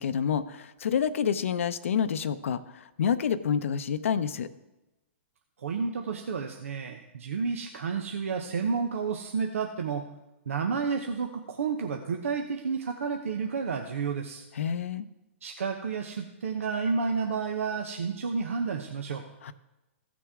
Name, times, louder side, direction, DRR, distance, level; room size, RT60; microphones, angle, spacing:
voice 1, 0.0-2.6 3.0-4.5 14.6-15.1 19.4-19.5, left 7 dB, 70° left, 12 dB, 0.7 m, -28 dB
voice 2, 5.6-10.0 10.5-14.5 15.4-19.3, right 5 dB, 75° right, 4 dB, 0.9 m, -31 dB
15.5 x 6.1 x 3.6 m, 0.99 s
hypercardioid pair, 125°, 7 cm